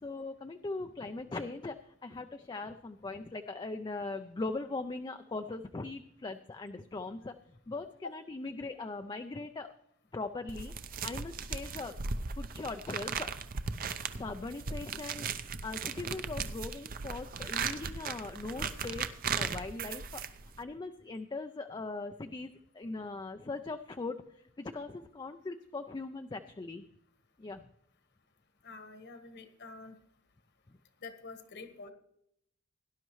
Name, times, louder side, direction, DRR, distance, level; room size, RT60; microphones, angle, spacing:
voice 1, 0.0-9.7 10.1-12.0 12.3-13.3 14.1-19.1 19.4-20.2 20.6-24.2 24.6-26.8 27.4-27.6, left 3 dB, 20° left, 7 dB, 0.4 m, -40 dB
sound 1, 10.5-20.6, right 5 dB, 45° right, 0.6 m, -37 dB
voice 2, 28.6-29.9 31.0-31.9, left 3 dB, 55° left, 8 dB, 1.4 m, -46 dB
17.5 x 11.0 x 3.1 m, 0.76 s
head